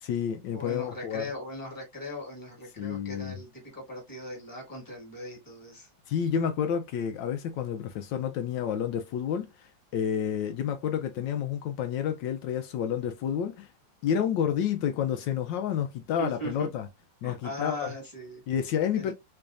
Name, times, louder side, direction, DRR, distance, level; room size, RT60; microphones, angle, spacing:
voice 1, 0.0-1.2 2.8-3.4 6.1-13.7 14.0-16.9 17.2-17.9 18.5-19.1, left 8 dB, 80° left, 1.3 m, -30 dB
voice 2, 0.5-5.9 16.2-16.7 17.2-18.4 18.9-19.1, left 1 dB, 10° left, 1.6 m, -39 dB
3.9 x 3.4 x 2.5 m
omnidirectional pair, 2.0 m